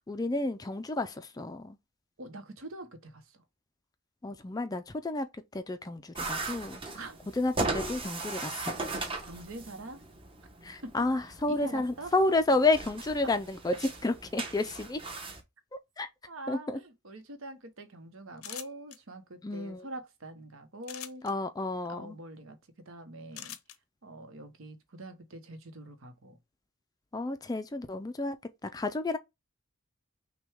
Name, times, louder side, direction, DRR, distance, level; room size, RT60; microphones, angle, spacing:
voice 1, 0.0-1.8 4.2-5.3 5.5-6.8 7.3-8.8 10.6-15.0 16.0-16.1 16.5-16.8 19.4-19.9 21.2-22.2 27.1-28.4 28.6-29.2, left 2 dB, 15° left, 0.3 m, -30 dB
voice 2, 2.2-3.4 6.9-7.2 9.3-10.0 10.8-11.0 11.5-12.1 16.3-21.2 21.9-23.5 24.0-26.4, right 1 dB, 70° right, 1.0 m, -44 dB
sound 1, 6.1-15.4, right 3 dB, 25° right, 0.8 m, -38 dB
sound 2, 18.4-19.0 20.8-21.3 23.3-23.8, left 11 dB, 80° left, 0.6 m, -42 dB
6.0 x 2.2 x 3.5 m
head